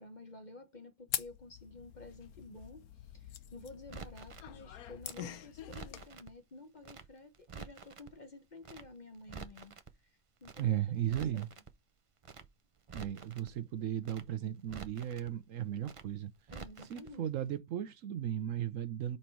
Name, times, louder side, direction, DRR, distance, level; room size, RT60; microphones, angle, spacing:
voice 1, 0.0-9.8 10.0-10.8 11.3-11.5 16.5-17.2, left 2 dB, 35° left, 1.0 m, -52 dB
sound 1, 1.1-6.1, left 11 dB, 85° left, 1.2 m, -44 dB
Crackle, 3.9-4.5 5.0-6.3 6.8-7.1 7.3-8.1 8.6-8.9 9.1-9.9 10.4-10.7 11.0-11.7 12.2-12.5 12.8-13.5 14.0-14.3 14.6-15.3 15.8-16.1 16.4-17.1 17.4-17.5, right 5 dB, 45° right, 0.4 m, -48 dB
voice 2, 10.6-11.5 12.9-16.3 16.8-19.2, right 11 dB, 70° right, 1.0 m, -36 dB
5.3 x 4.4 x 4.5 m
omnidirectional pair, 1.5 m